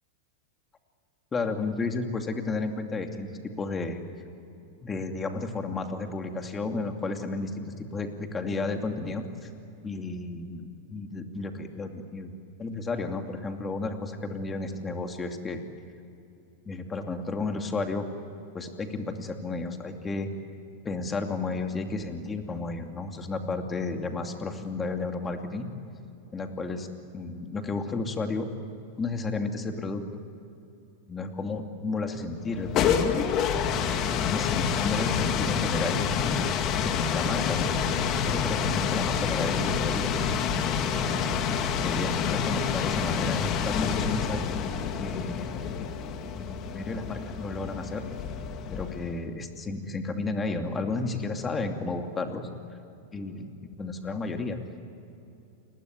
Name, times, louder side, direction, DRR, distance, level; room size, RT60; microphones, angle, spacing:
voice 1, 1.3-3.3 3.6-4.0 4.8-9.5 9.8-12.3 12.6-15.6 16.7-18.1 18.5-20.3 20.8-25.7 26.3-26.9 27.1-28.5 29.0-30.0 31.1-33.2 34.2-36.0 36.8-37.7 38.2-40.2 40.9-41.4 41.8-44.5 45.0-45.6 46.4-48.0 48.7-52.5 53.1-54.6, left 3 dB, 15° left, 5 dB, 2.7 m, -32 dB
sound 1, 32.5-49.2, left 7 dB, 35° left, 2.3 m, -28 dB
29.5 x 21.5 x 9.6 m, 2.7 s
supercardioid pair, 140°, 0 cm